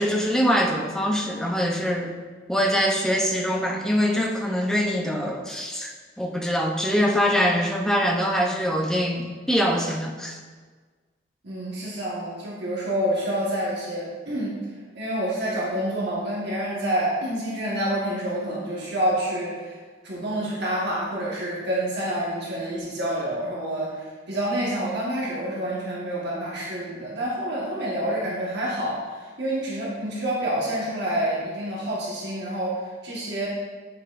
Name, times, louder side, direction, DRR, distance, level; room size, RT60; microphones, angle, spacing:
voice 1, 0.0-2.1 2.5-10.4, equal, 5° left, 0 dB, 0.6 m, -23 dB
voice 2, 11.4-14.6 14.9-19.8 20.0-33.5, right 1 dB, 60° right, -6 dB, 1.4 m, -28 dB
7.8 x 6.5 x 2.5 m, 1.4 s
head